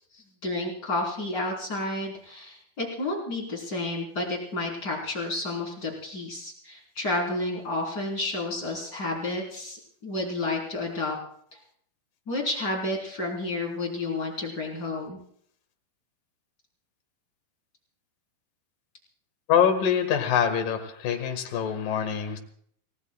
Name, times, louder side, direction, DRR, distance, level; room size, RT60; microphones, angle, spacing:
voice 1, 0.1-11.2 11.5-11.6 12.3-15.2, left 2 dB, 30° left, -1 dB, 4.2 m, -31 dB
voice 2, 19.5-22.4, left 8 dB, 70° left, 5 dB, 3.2 m, -24 dB
28.5 x 18.0 x 2.3 m, 0.63 s
omnidirectional pair, 4.1 m